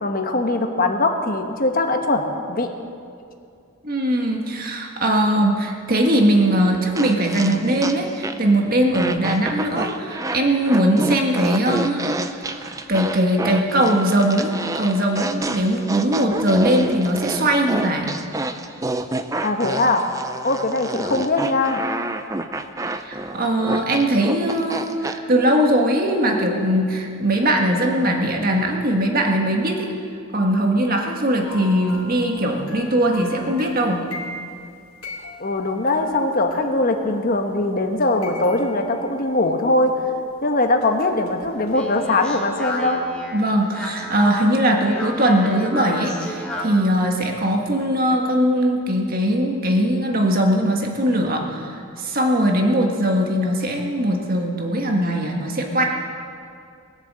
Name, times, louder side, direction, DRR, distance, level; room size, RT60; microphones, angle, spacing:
voice 1, 0.0-2.7 19.4-20.1 20.4-21.8 35.4-40.0 40.4-43.0, left 2 dB, 40° left, 4 dB, 1.1 m, -21 dB
voice 2, 3.8-12.2 12.5-18.1 23.1-29.9 30.3-34.0 43.3-55.8, right 1 dB, 40° right, 1 dB, 1.7 m, -20 dB
sound 1, 7.0-8.6 8.9-25.2, right 2 dB, 15° right, 0.5 m, -29 dB
sound 2, 31.4-37.3 37.9-40.0 40.8-41.8 42.1-42.2, left 2 dB, 85° left, 2.3 m, -40 dB
Speech, 41.4-46.9, equal, 5° left, 1.8 m, -32 dB
20.5 x 7.5 x 7.5 m, 2.4 s
head